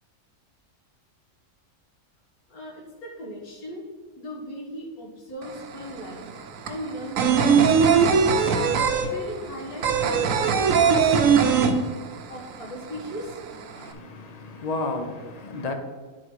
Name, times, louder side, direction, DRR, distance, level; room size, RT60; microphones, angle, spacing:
voice 1, 2.5-3.8 4.2-6.3 6.6-7.8 8.6-11.7 12.3-13.4, equal, 70° left, 2.1 m, -38 dB
sound 1, 5.4-5.5 5.8-12.4 12.6-12.7 13.0-13.8, right 6 dB, 65° right, 1.0 m, -20 dB
voice 2, 13.7-15.7, left 3 dB, 50° left, 0.4 m, -32 dB
9.7 x 4.0 x 4.6 m
omnidirectional pair, 1.6 m